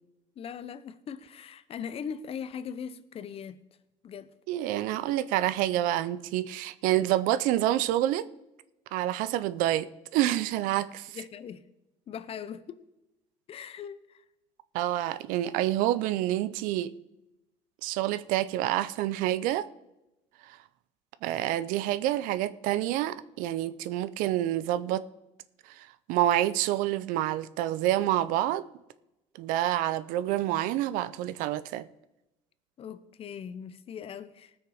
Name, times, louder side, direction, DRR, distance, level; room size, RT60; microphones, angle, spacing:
voice 1, 0.4-3.6 4.0-4.3 11.1-11.6 12.1-12.8 13.5-14.2 32.8-34.5, left 7 dB, 45° left, 0.8 m, -40 dB
voice 2, 4.5-8.3 8.9-11.2 14.7-16.9 17.8-19.7 20.5-20.6 21.2-25.0 25.7-28.7 29.4-31.9, right 13 dB, 80° right, 0.6 m, -28 dB
18.5 x 6.5 x 5.0 m
cardioid pair, 105°, 14 cm